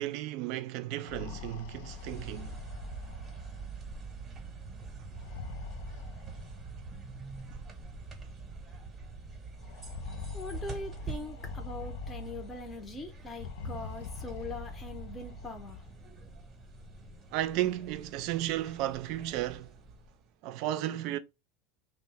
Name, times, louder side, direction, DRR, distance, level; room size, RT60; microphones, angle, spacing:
voice 1, 0.0-2.6 17.3-19.8 20.4-21.2, right 14 dB, 60° right, 0.4 m, -34 dB
sound 1, 0.8-3.7 5.1-6.8 7.8-7.9 8.2-8.3 9.6-12.7 13.3-15.9, left 4 dB, 75° left, 0.4 m, -43 dB
sound 2, 1.8-20.3, right 4 dB, 25° right, 0.8 m, -45 dB
voice 2, 10.3-15.8, left 2 dB, 15° left, 0.6 m, -42 dB
2.6 x 2.0 x 3.2 m
supercardioid pair, 120°, 0 cm